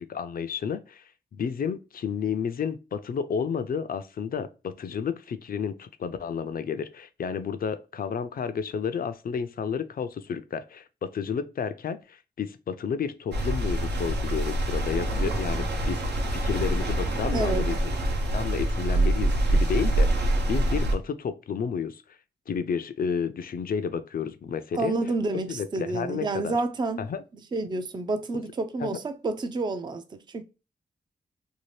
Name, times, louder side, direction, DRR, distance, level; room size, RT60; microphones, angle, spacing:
voice 1, 0.1-1.0 1.3-17.9 18.3-22.0 22.5-24.9 25.5-26.5 27.0-27.2 28.8-28.9, left 6 dB, 60° left, 0.4 m, -31 dB
sound 1, 13.3-20.9, right 1 dB, 80° right, 0.8 m, -25 dB
voice 2, 17.3-17.7 24.7-27.1 27.5-30.4, right 3 dB, 25° right, 0.4 m, -29 dB
2.7 x 2.5 x 3.1 m
wide cardioid pair, 120°, 17 cm